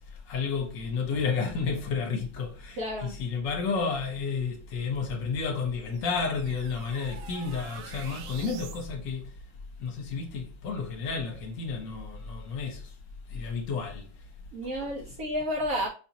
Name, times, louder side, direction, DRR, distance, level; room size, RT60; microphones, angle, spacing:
voice 1, 0.3-9.3 9.8-12.9 13.3-14.1, left 5 dB, 65° left, 1.4 m, -31 dB
voice 2, 2.8-3.2 14.5-15.9, equal, 60° right, 1.0 m, -31 dB
sound 1, 5.0-8.9, right 7 dB, 80° right, 1.4 m, -47 dB
5.5 x 2.5 x 2.8 m
omnidirectional pair, 2.3 m